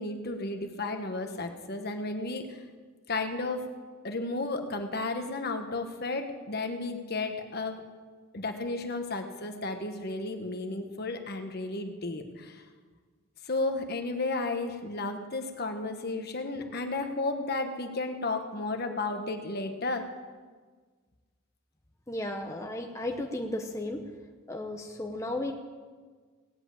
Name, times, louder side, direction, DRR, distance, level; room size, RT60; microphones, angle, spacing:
voice 1, 0.0-2.6 3.1-3.7 4.0-7.8 8.3-12.6 13.4-20.1, left 2 dB, 50° left, 5 dB, 1.3 m, -33 dB
voice 2, 22.1-24.0 24.5-25.5, left 1 dB, 15° left, 2 dB, 0.9 m, -34 dB
18.0 x 8.0 x 8.7 m, 1.5 s
head